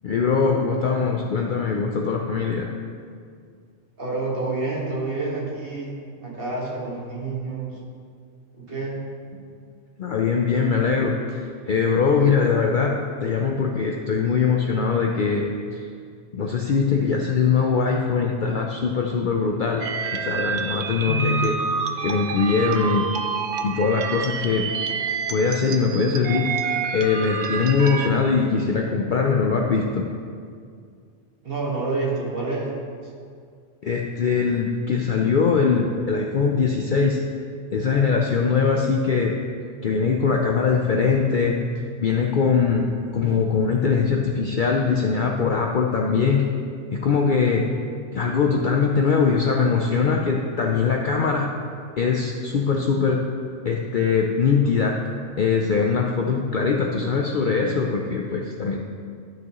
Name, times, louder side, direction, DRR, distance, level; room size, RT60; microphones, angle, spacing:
voice 1, 0.0-2.7 10.0-11.4 11.7-13.0 13.2-15.4 15.7-15.9 16.3-19.8 20.1-21.6 22.0-23.1 23.6-24.7 25.3-26.5 26.9-30.0 33.8-37.2 37.7-39.3 39.8-41.6 42.0-42.9 43.1-46.4 46.9-47.6 48.1-51.5 52.0-53.2 53.6-55.0 55.4-58.8, left 5 dB, 60° left, 1 dB, 0.5 m, -21 dB
voice 2, 4.0-5.9 6.2-7.8 8.6-9.0 31.4-32.7 33.0-33.1, right 3 dB, 50° right, -5 dB, 1.9 m, -28 dB
sound 1, 19.8-28.1, right 6 dB, 65° right, 0.9 m, -28 dB
12.0 x 6.1 x 3.0 m, 2.2 s
omnidirectional pair, 1.3 m